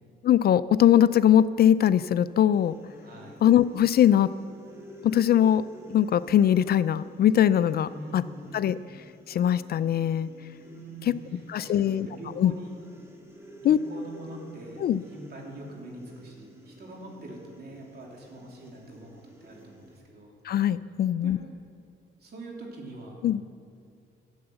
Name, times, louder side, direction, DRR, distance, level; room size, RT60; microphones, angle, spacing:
voice 1, 0.2-2.8 3.4-4.3 5.0-5.6 5.9-8.2 8.5-8.8 9.3-10.3 11.1-11.2 11.5-12.1 12.4-12.5 13.6-13.8 14.8-15.0 20.4-21.4 23.2-23.4, left 10 dB, 50° left, 16 dB, 0.4 m, -21 dB
sound 1, 2.5-20.0, equal, 15° right, 2.1 m, -50 dB
voice 2, 3.0-3.4 7.8-8.5 10.6-12.8 13.6-20.3 21.2-21.4 22.2-23.2, right 2 dB, 55° right, -1 dB, 3.1 m, -44 dB
13.0 x 7.9 x 7.7 m, 2.4 s
cardioid pair, 90°, 20 cm